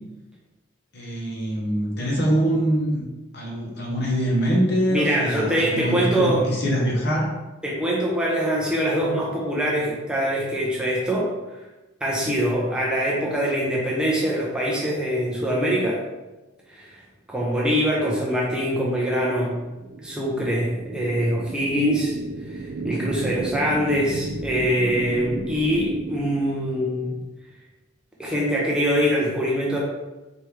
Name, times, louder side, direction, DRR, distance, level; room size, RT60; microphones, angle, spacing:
voice 1, 0.9-3.0 3.3-7.3, equal, 55° left, -2 dB, 1.0 m, -24 dB
voice 2, 4.9-6.5 7.6-11.6 12.0-16.0 16.7-17.0 17.3-19.6 20.0-22.2 22.5-27.2 28.2-29.8, equal, 5° right, -5 dB, 0.6 m, -23 dB
sound 1, 19.1-27.1, right 2 dB, 50° right, 0.3 m, -34 dB
4.3 x 3.4 x 3.2 m, 1.1 s
head